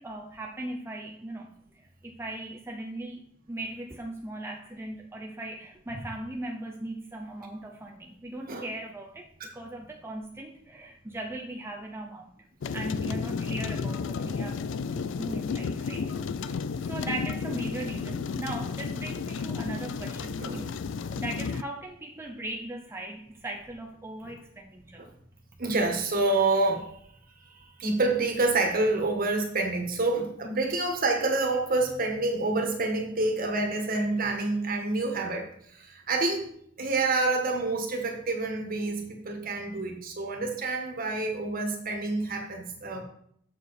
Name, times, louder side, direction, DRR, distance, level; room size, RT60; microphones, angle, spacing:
voice 1, 0.0-12.3 12.7-14.6 14.9-16.1 16.5-20.7 21.2-25.0, right 1 dB, 15° right, 1 dB, 0.6 m, -39 dB
sound 1, 12.6-21.6, left 5 dB, 65° left, 0.4 m, -32 dB
voice 2, 25.6-26.9 27.4-35.4 35.7-36.5 36.8-43.0, right 2 dB, 45° right, 2 dB, 1.6 m, -27 dB
7.1 x 6.7 x 4.2 m, 0.68 s
head